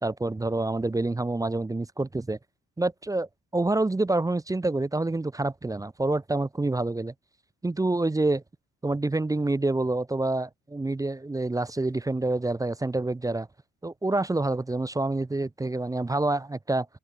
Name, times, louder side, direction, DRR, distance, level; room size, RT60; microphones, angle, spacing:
voice 1, 0.0-2.4 2.8-7.1 7.6-8.4 8.8-13.5 13.8-16.9, right 2 dB, 10° right, 0.5 m, -27 dB
cardioid pair, 90°, 30 cm